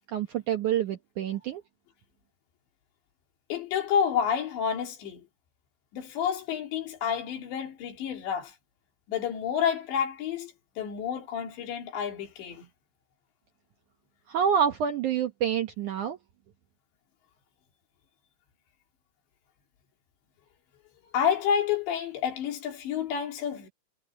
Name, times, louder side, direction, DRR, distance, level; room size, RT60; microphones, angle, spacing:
voice 1, 0.1-1.6 14.3-16.2, right 8 dB, 70° right, 1.9 m, -27 dB
voice 2, 3.5-5.2 5.9-8.6 9.1-12.7 21.1-23.7, left 8 dB, 85° left, 5.2 m, -29 dB
omnidirectional pair, 5.0 m